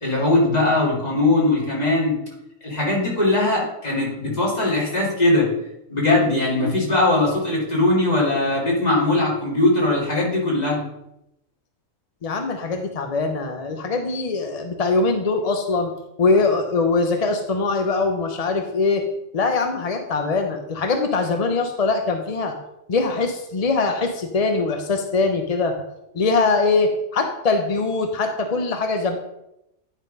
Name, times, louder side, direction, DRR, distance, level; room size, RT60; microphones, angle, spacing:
voice 1, 0.0-2.2 2.6-5.5 5.9-10.8, left 2 dB, 30° left, -5 dB, 2.6 m, -20 dB
voice 2, 12.2-15.9 16.2-19.0 19.3-22.5 22.9-25.7 26.1-29.2, left 3 dB, 45° left, 5 dB, 0.5 m, -22 dB
9.8 x 3.7 x 5.2 m, 0.85 s
omnidirectional pair, 1.4 m